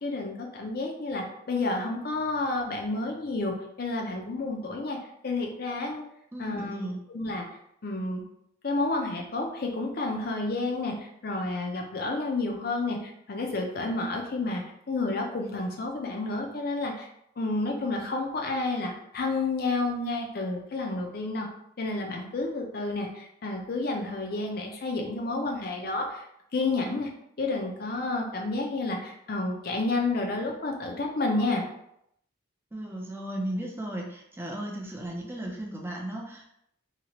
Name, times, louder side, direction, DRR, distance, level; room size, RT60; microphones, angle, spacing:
voice 1, 0.0-5.0 5.2-6.0 6.4-7.5 7.8-8.2 8.6-17.1 17.4-21.5 21.8-26.2 26.5-27.1 27.4-31.6, left 2 dB, 50° left, 1 dB, 0.5 m, -30 dB
voice 2, 6.3-7.0 32.7-36.4, right 1 dB, 10° right, -1 dB, 0.4 m, -35 dB
2.9 x 2.4 x 2.9 m, 0.76 s
head